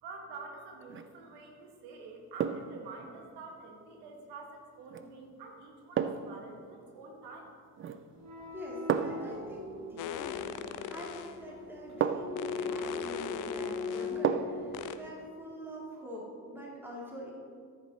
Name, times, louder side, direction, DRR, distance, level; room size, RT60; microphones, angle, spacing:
voice 1, 0.0-7.8, right 3 dB, 60° right, 2 dB, 1.7 m, -48 dB
sound 1, 0.8-1.2 2.4-2.8 4.9-5.1 6.0-6.4 7.8-8.1 8.9-9.3 11.0-11.1 12.0-12.5 14.2-14.7 15.1-15.2, right 8 dB, 30° right, 0.5 m, -32 dB
sound 2, 8.1-15.1, left 4 dB, 85° right, 1.5 m, -40 dB
voice 2, 8.5-10.5 10.9-14.7 15.0-17.3, equal, 5° right, -4 dB, 2.7 m, -44 dB
sound 3, 10.0-11.4 12.4-14.2 14.7-15.0, left 9 dB, 45° left, 0.6 m, -39 dB
14.0 x 7.8 x 3.0 m, 2.1 s
figure-of-eight pair, 45°, 44 cm